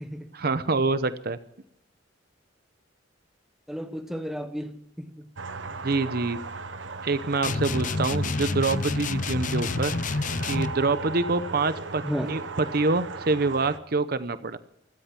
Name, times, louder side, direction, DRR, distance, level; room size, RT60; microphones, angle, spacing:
voice 1, 0.3-1.4 5.8-6.4 7.0-9.9 10.5-14.6, right 3 dB, 55° right, 0.8 m, -26 dB
voice 2, 3.7-5.3 12.0-12.3, equal, ahead, 1.2 m, -33 dB
sound 1, 5.4-13.8, right 3 dB, 75° right, 1.0 m, -37 dB
sound 2, 7.4-10.8, left 3 dB, 45° left, 0.6 m, -28 dB
16.5 x 13.5 x 6.0 m
head